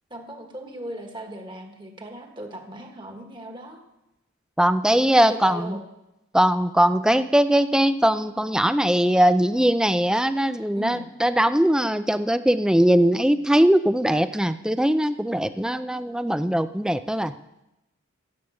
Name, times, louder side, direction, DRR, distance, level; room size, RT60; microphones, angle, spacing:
voice 1, 0.1-3.8 4.9-5.8 10.7-11.1, right 1 dB, 20° right, 3 dB, 1.5 m, -38 dB
voice 2, 4.6-5.8 6.3-17.3, right 1 dB, 5° right, 12 dB, 0.3 m, -20 dB
14.0 x 8.7 x 6.3 m, 0.93 s
head